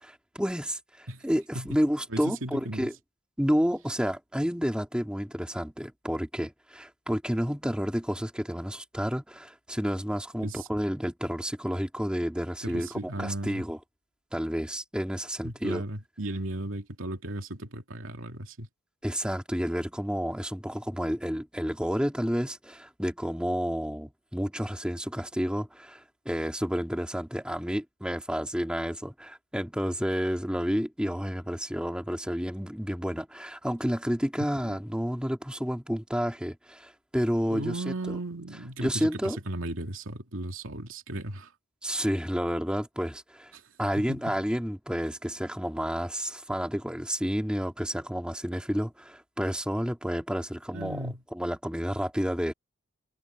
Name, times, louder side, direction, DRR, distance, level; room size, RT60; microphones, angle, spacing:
voice 1, 0.0-2.9 3.4-13.8 14.3-15.8 19.0-38.2 38.8-39.4 41.8-43.5 43.8-52.5, equal, 5° right, 2.7 m, -30 dB
voice 2, 2.1-2.9 10.4-10.7 12.6-13.6 15.4-18.7 34.5-34.8 37.5-41.5 43.5-43.6 44.0-44.4 50.7-51.2, right 1 dB, 70° right, 2.5 m, -36 dB
head